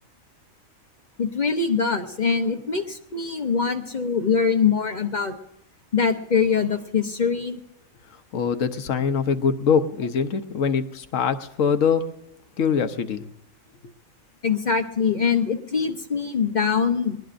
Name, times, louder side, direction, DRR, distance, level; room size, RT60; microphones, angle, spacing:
voice 1, 1.2-5.4 5.9-7.6 14.4-17.2, left 6 dB, 40° left, 6 dB, 0.8 m, -23 dB
voice 2, 8.3-12.1 12.6-13.3, left 6 dB, 70° left, 9 dB, 1.2 m, -23 dB
20.5 x 20.0 x 2.6 m, 0.85 s
omnidirectional pair, 1.4 m